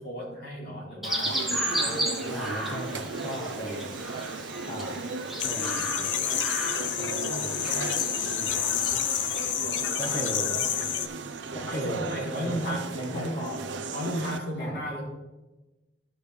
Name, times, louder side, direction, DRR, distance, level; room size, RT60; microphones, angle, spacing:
voice 1, 0.0-1.4 1.7-2.4 9.9-10.2 11.6-13.4 13.9-15.0, equal, 55° left, -5 dB, 3.3 m, -34 dB
Chirp tweet, 1.0-9.5, right 1 dB, ahead, 1.2 m, -34 dB
sound 1, 1.3-14.4, right 3 dB, 75° right, 0.6 m, -36 dB
voice 2, 2.3-4.0 4.7-5.0 5.5-6.2 7.0-7.7 8.3-8.6 10.0-10.6 11.5-12.2 12.4-13.7 14.6-14.8, equal, 30° left, -4 dB, 1.2 m, -37 dB
sound 2, 5.4-11.1, left 10 dB, 80° left, 0.5 m, -29 dB
14.0 x 5.1 x 3.3 m, 1.1 s
head